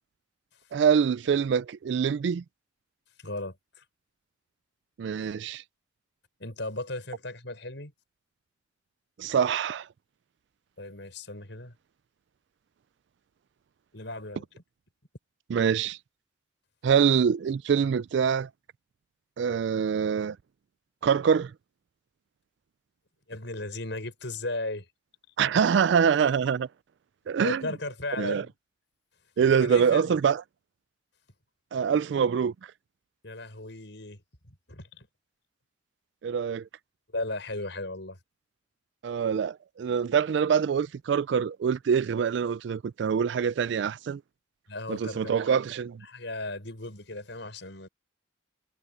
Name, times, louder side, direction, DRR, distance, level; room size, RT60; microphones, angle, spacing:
voice 1, 0.7-2.4 5.0-5.6 9.2-9.9 15.5-16.0 16.8-18.5 19.4-20.4 21.0-21.5 25.4-26.7 27.3-27.6 28.2-28.5 29.4-30.4 31.7-32.5 36.2-36.7 39.0-44.2 44.9-46.0, right 7 dB, 65° right, 0.3 m, -25 dB
voice 2, 3.2-3.6 6.4-7.9 10.8-11.7 13.9-14.4 23.3-24.8 27.4-28.5 29.4-30.1 33.2-34.2 34.5-35.1 37.1-38.2 44.7-45.6 46.0-47.9, left 2 dB, 70° left, 6.0 m, -36 dB
head